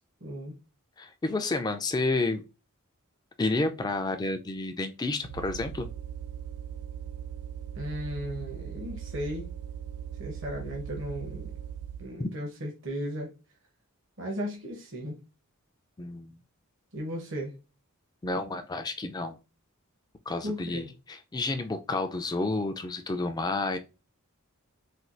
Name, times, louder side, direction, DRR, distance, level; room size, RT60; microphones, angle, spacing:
voice 1, 0.2-0.5 7.8-9.5 10.2-11.5 12.0-13.3 14.2-15.2 16.9-17.5 20.4-20.9, equal, 60° right, 0.9 m, -35 dB
voice 2, 1.0-2.4 3.4-5.9 12.2-12.3 16.0-16.4 18.2-19.4 20.3-23.8, left 2 dB, 20° left, 0.3 m, -30 dB
sound 1, 5.2-12.1, right 9 dB, 85° right, 0.4 m, -39 dB
4.3 x 2.3 x 2.5 m
head